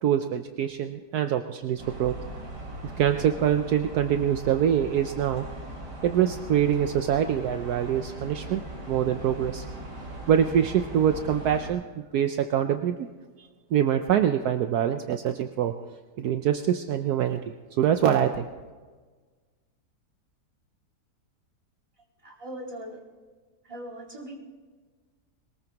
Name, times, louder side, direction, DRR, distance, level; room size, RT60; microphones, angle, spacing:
voice 1, 0.0-2.1 2.8-5.4 6.0-8.6 8.9-9.6 10.3-11.8 12.1-13.1 13.7-15.7 16.2-17.4 17.8-18.4, right 9 dB, 70° right, 7 dB, 1.2 m, -24 dB
sound 1, 1.8-11.7, right 1 dB, 90° right, 3.5 m, -39 dB
voice 2, 22.2-23.0 23.7-24.4, right 1 dB, 20° right, -2 dB, 2.5 m, -39 dB
22.0 x 20.0 x 3.0 m, 1.4 s
omnidirectional pair, 1.8 m